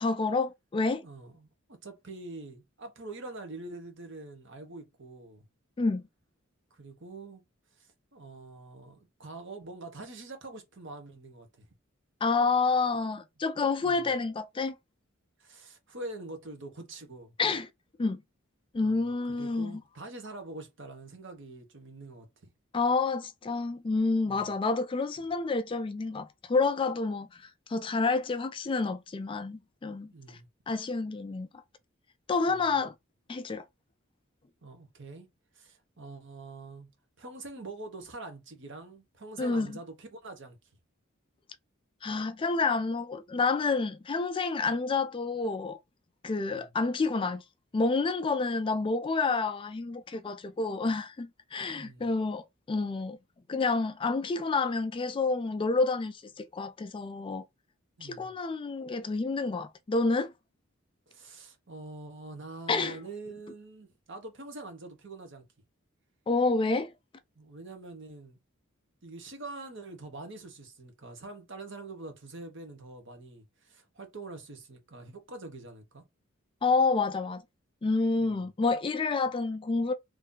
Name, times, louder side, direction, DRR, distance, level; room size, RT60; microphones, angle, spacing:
voice 1, 0.0-1.1 5.8-6.0 12.2-14.8 17.4-17.7 18.0-18.2 18.7-19.8 22.7-30.4 30.7-31.5 32.3-32.9 33.3-33.6 39.4-39.8 42.0-45.8 46.2-47.4 47.7-53.2 53.5-57.4 58.0-60.3 62.7-63.0 66.3-66.9 76.6-77.4 77.8-79.9, left 3 dB, 25° left, 0.3 m, -29 dB
voice 2, 1.0-5.4 6.7-7.4 7.7-11.7 13.8-14.1 15.4-17.3 18.8-22.5 24.2-24.5 30.1-30.5 32.5-32.7 34.6-35.3 35.5-36.9 37.2-40.6 46.5-46.7 51.7-52.1 58.0-58.3 61.1-65.4 67.3-68.4 69.0-76.0 78.2-78.4, right 2 dB, 60° right, 1.1 m, -45 dB
3.2 x 2.6 x 3.7 m
head